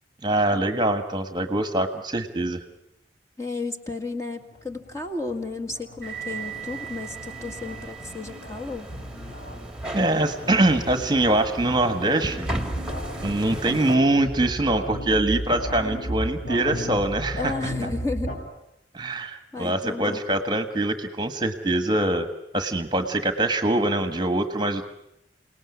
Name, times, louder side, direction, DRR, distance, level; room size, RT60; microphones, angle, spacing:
voice 1, 0.2-2.6 9.9-12.5 13.2-17.5 18.9-22.3 22.5-24.9, right 1 dB, 25° right, 8 dB, 1.4 m, -23 dB
voice 2, 3.4-8.9 17.3-18.4 19.5-20.2, left 3 dB, 15° left, 3 dB, 1.9 m, -33 dB
sound 1, 4.4-18.4, equal, 50° left, 5.3 m, -35 dB
sound 2, 6.0-14.0, right 2 dB, 5° right, 2.1 m, -36 dB
28.5 x 19.0 x 9.7 m, 0.84 s
head